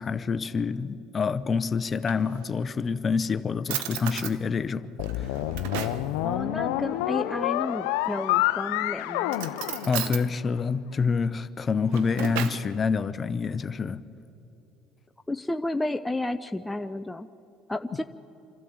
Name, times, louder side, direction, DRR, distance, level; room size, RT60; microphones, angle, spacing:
voice 1, 0.0-4.9 5.2-5.3 9.9-14.0, left 5 dB, 35° left, 0.8 m, -27 dB
Drawer open or close, 1.8-2.7 3.3-3.4 3.7-4.4 5.0-6.1 8.0-8.5 9.3-10.3 11.6-12.7, right 10 dB, 80° right, 1.0 m, -35 dB
sound 1, 5.0-10.5, left 15 dB, 85° left, 0.6 m, -28 dB
voice 2, 6.2-9.3 15.3-17.3 17.7-18.0, left 2 dB, 10° left, 0.6 m, -31 dB
27.0 x 12.5 x 8.8 m
supercardioid pair, 85°, 0 cm